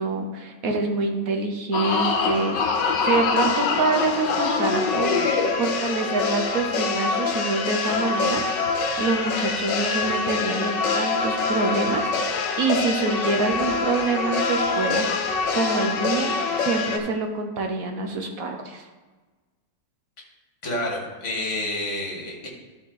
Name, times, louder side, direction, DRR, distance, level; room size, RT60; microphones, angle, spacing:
voice 1, 0.0-5.2 5.6-8.4 9.0-15.1 15.5-18.8, right 3 dB, 55° right, 3 dB, 1.3 m, -26 dB
sound 1, 1.7-17.0, left 4 dB, 75° left, 1.5 m, -25 dB
voice 2, 20.6-22.5, left 1 dB, 40° left, -1 dB, 2.1 m, -29 dB
12.5 x 4.8 x 4.0 m, 1.3 s
omnidirectional pair, 2.0 m